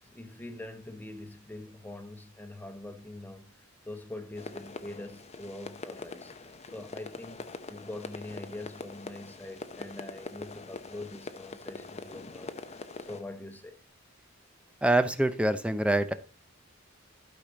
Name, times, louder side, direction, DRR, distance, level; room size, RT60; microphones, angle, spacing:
voice 1, 0.0-13.8, left 2 dB, 10° left, 1.1 m, -44 dB
sound 1, 4.3-13.2, left 3 dB, 35° left, 0.7 m, -43 dB
voice 2, 14.8-16.1, right 1 dB, 5° right, 0.6 m, -25 dB
12.0 x 5.0 x 3.9 m
head